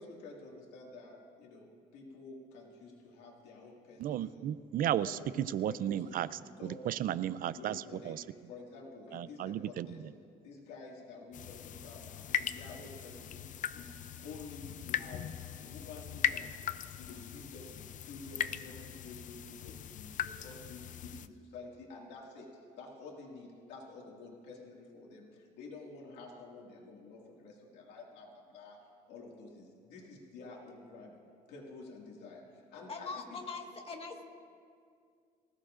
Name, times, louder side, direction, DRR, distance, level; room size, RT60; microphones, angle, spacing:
voice 1, 0.0-4.5 5.0-6.2 6.6-6.9 7.4-8.2 8.5-10.0 10.4-16.6 17.0-31.2 31.5-33.4, left 3 dB, 85° left, -1 dB, 2.1 m, -50 dB
voice 2, 4.0-8.2 9.1-10.0, right 11 dB, 55° right, 16 dB, 0.4 m, -34 dB
sound 1, 11.3-21.3, left 10 dB, 50° left, 0.5 m, -39 dB
voice 3, 32.9-34.2, left 4 dB, 35° left, 3 dB, 1.7 m, -42 dB
24.0 x 15.5 x 2.5 m, 2.2 s
cardioid pair, 110°, 17 cm